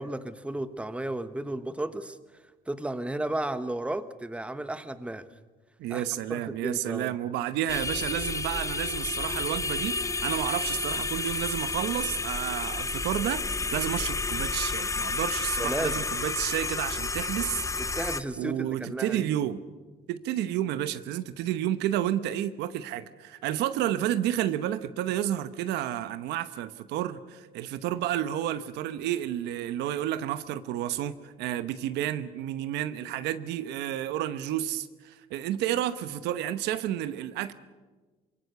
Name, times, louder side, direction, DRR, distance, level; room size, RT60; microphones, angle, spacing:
voice 1, 0.0-2.2 2.7-5.3 5.9-6.0 6.3-7.2 15.6-16.1 17.8-19.3, right 1 dB, 5° right, 1.1 m, -33 dB
voice 2, 5.8-17.9 18.4-19.6 20.1-37.5, right 12 dB, 85° right, 1.0 m, -31 dB
sound 1, 7.7-18.2, left 3 dB, 20° left, 0.8 m, -31 dB
24.5 x 22.0 x 6.8 m
cardioid pair, 110°, 17 cm